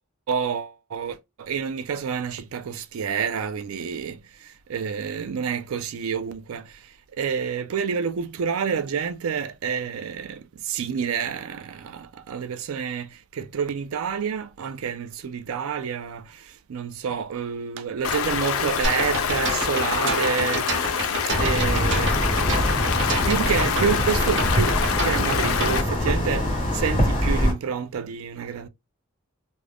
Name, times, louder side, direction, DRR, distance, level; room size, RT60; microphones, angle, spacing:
voice 1, 0.3-4.2 4.7-6.6 7.2-10.4 10.7-13.1 13.4-16.2 16.7-20.7 21.4-22.6 23.3-26.5 26.7-28.7, right 7 dB, 75° right, 0.4 m, -28 dB
Stream, 18.0-25.8, left 7 dB, 75° left, 0.4 m, -26 dB
sound 1, 18.8-26.1, right 2 dB, 55° right, 0.8 m, -29 dB
sound 2, 21.3-27.5, equal, 25° left, 1.1 m, -24 dB
2.4 x 2.1 x 3.3 m
head